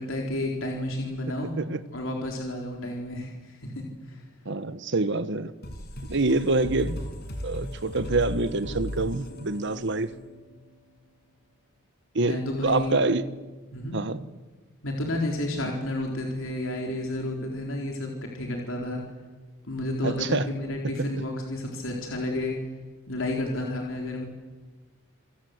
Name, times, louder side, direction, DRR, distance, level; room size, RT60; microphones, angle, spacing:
voice 1, 0.0-1.6 1.9-4.3 12.2-13.0 13.7-14.0 14.8-19.0 19.6-22.6 23.1-24.2, left 1 dB, 65° left, 4.1 m, -31 dB
voice 2, 4.4-5.5 6.1-7.0 7.4-10.1 12.1-13.2 13.9-14.2 20.0-20.5, right 2 dB, 55° right, 1.2 m, -26 dB
sound 1, 5.6-10.9, left 1 dB, 50° left, 5.6 m, -37 dB
28.0 x 26.0 x 8.1 m
head